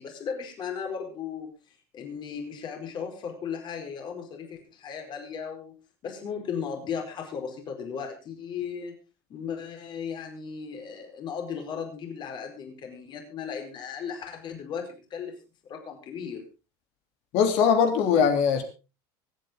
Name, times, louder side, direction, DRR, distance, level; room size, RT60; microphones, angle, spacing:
voice 1, 0.0-1.5 1.9-5.8 6.0-8.9 9.3-15.3 15.6-16.4, left 6 dB, 40° left, 4 dB, 4.7 m, -36 dB
voice 2, 17.3-18.6, left 7 dB, 60° left, 6 dB, 3.3 m, -21 dB
24.5 x 9.0 x 3.9 m, 0.32 s
supercardioid pair, 135°, 12 cm